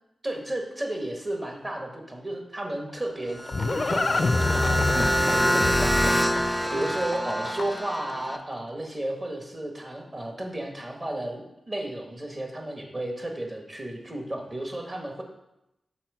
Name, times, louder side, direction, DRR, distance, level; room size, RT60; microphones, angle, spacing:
voice 1, 0.2-15.2, right 1 dB, 35° right, 2 dB, 1.5 m, -33 dB
Livestock farm animals working animals, 2.9-8.0, left 3 dB, 50° left, 0.4 m, -27 dB
sound 1, 3.3-8.4, equal, 10° right, 0.7 m, -26 dB
5.9 x 4.2 x 6.1 m, 0.88 s
cardioid pair, 50°, 0 cm